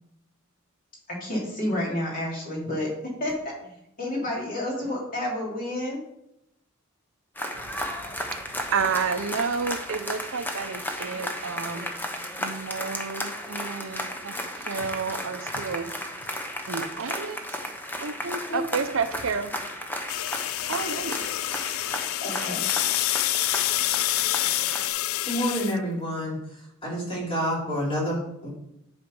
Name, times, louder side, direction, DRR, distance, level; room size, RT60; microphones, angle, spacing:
voice 1, 1.1-2.9 3.2-3.7 4.0-6.0 18.5-18.6 22.2-22.6, left 1 dB, 40° left, -3 dB, 3.1 m, -30 dB
sound 1, 7.4-24.9, left 1 dB, 10° left, 0.8 m, -34 dB
voice 2, 7.5-11.9 12.4-16.0 16.2-16.3 16.7-17.4 18.0-19.9 20.7-21.2, right 5 dB, 65° right, 10 dB, 0.6 m, -31 dB
sound 2, 20.1-25.8, left 15 dB, 70° left, 0.3 m, -27 dB
voice 3, 25.2-26.4 26.8-28.5, equal, 25° left, -4 dB, 3.0 m, -28 dB
10.5 x 4.3 x 5.3 m, 0.80 s
head